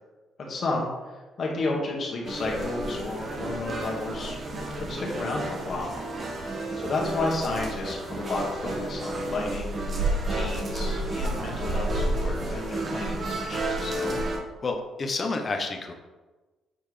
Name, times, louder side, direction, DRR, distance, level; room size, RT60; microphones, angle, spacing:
voice 1, 0.5-0.9 1.4-4.4 4.7-5.9 6.3-9.8 10.3-14.0, left 2 dB, 55° left, -1 dB, 1.7 m, -32 dB
sound 1, 2.2-14.4, right 1 dB, 40° right, 1.2 m, -31 dB
voice 2, 14.6-15.9, left 3 dB, 40° left, 4 dB, 0.9 m, -30 dB
7.6 x 4.6 x 3.3 m, 1.2 s
cardioid pair, 90°, 0 cm